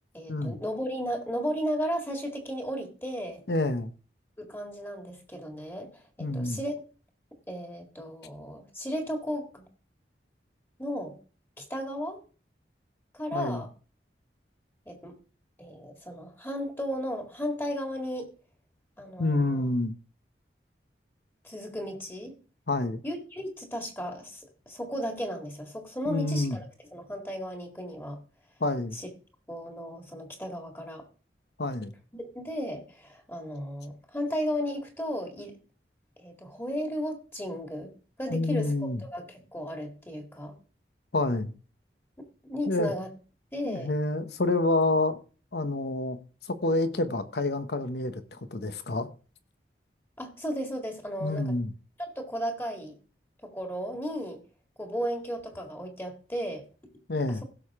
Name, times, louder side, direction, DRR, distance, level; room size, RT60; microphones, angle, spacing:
voice 1, 0.1-3.4 4.4-6.8 7.5-9.7 10.8-11.2 11.6-12.2 13.1-13.7 14.9-15.1 15.6-18.3 19.0-19.7 21.4-22.4 23.0-26.6 26.9-28.2 28.9-29.1 29.5-31.0 32.1-35.6 36.2-37.9 38.2-38.7 39.0-40.5 42.4-43.1 43.5-43.9 50.2-51.5 52.0-53.0 53.4-54.4 54.8-56.7, equal, 15° left, 2.0 m, -34 dB
voice 2, 3.5-3.9 6.2-6.6 13.3-13.6 19.2-19.9 22.7-23.0 26.1-26.6 28.6-29.0 31.6-31.9 38.3-39.0 41.1-41.5 42.7-42.9 43.6-45.2 45.5-46.2 46.5-49.1 51.2-51.7 57.1-57.4, left 2 dB, 65° left, 1.1 m, -28 dB
16.0 x 6.7 x 3.6 m
head